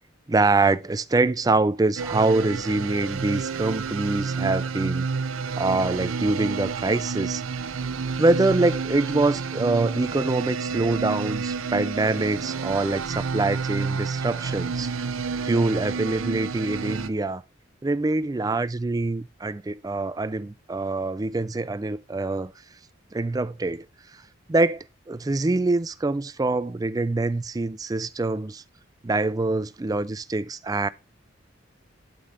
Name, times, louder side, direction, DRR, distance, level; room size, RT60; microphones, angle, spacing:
voice 1, 0.3-5.1 5.6-7.4 8.2-14.9 15.4-17.4 17.8-22.5 23.1-23.9 24.5-28.6 29.0-30.9, right 2 dB, 20° right, 0.3 m, -24 dB
sound 1, 2.0-17.1, right 5 dB, 85° right, 0.6 m, -30 dB
8.3 x 7.6 x 2.5 m
head